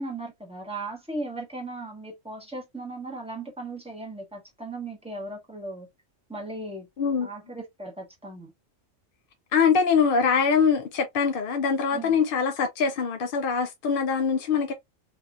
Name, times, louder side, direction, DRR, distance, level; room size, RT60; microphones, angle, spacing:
voice 1, 0.0-5.9 6.3-6.9 7.2-8.5 11.9-12.2, right 2 dB, 5° right, 1.2 m, -37 dB
voice 2, 7.0-7.3 9.5-14.7, left 6 dB, 60° left, 0.6 m, -23 dB
3.4 x 2.8 x 2.4 m
omnidirectional pair, 1.4 m